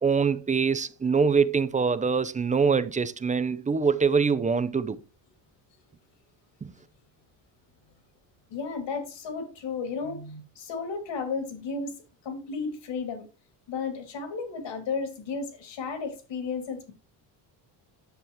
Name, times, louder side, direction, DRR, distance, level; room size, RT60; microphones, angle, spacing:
voice 1, 0.0-5.0 6.6-6.7, right 5 dB, 15° right, 0.4 m, -24 dB
voice 2, 8.5-11.9 12.2-13.2 13.7-16.9, left 4 dB, 65° left, 2.7 m, -33 dB
10.0 x 7.0 x 3.1 m
cardioid pair, 130°, 46 cm